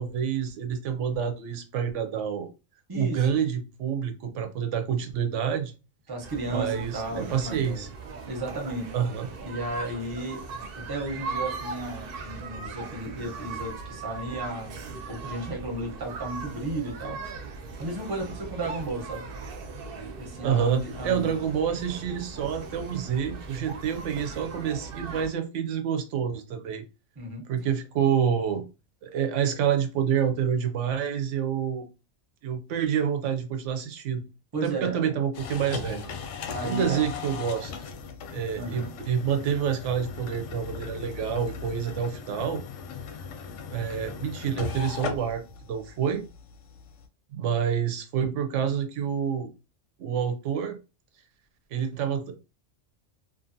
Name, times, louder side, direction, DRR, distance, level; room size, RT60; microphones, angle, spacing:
voice 1, 0.0-2.5 2.9-5.7 6.5-7.9 8.9-9.3 20.4-26.8 27.5-28.6 29.0-31.8 32.4-34.2 34.6-36.0 36.6-37.7 38.3-42.6 43.7-45.4 45.7-46.2 47.3-49.5 50.0-50.8 51.7-52.4, right 8 dB, 85° right, 0.9 m, -28 dB
voice 2, 2.9-3.3 6.1-7.9 8.3-8.9 9.4-10.4 10.7-17.2 17.8-19.2 20.2-21.4 27.2-27.5 34.5-35.1 36.5-37.1 38.6-39.0, right 2 dB, 25° right, 0.7 m, -34 dB
sound 1, 6.2-25.3, right 4 dB, 60° right, 0.7 m, -39 dB
sound 2, 35.3-47.1, left 5 dB, 90° left, 0.9 m, -38 dB
2.6 x 2.4 x 2.5 m
omnidirectional pair, 1.2 m